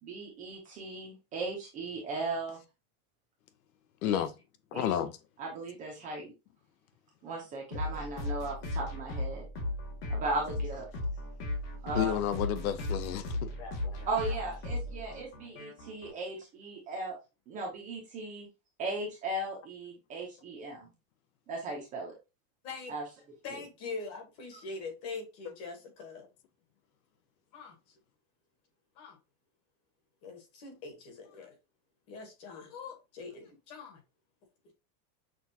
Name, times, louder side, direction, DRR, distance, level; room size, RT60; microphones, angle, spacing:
voice 1, 0.0-2.6 4.0-4.2 4.7-4.9 5.4-6.3 7.2-9.5 10.1-10.9 11.8-12.2 14.1-17.2 17.5-18.5 18.8-20.9 21.5-22.1 22.9-23.0 23.5-23.6, right 2 dB, 20° right, 0.5 m, -37 dB
voice 2, 4.0-4.3 4.7-5.1 11.9-13.5, left 10 dB, 70° left, 0.6 m, -31 dB
sound 1, 7.7-16.1, left 1 dB, 50° left, 1.5 m, -36 dB
voice 3, 13.6-14.4 22.6-22.9 23.4-26.2 27.5-27.7 29.0-29.2 30.2-31.5 32.1-34.0, left 4 dB, 35° left, 1.1 m, -43 dB
6.1 x 2.3 x 2.7 m
supercardioid pair, 175°, 43 cm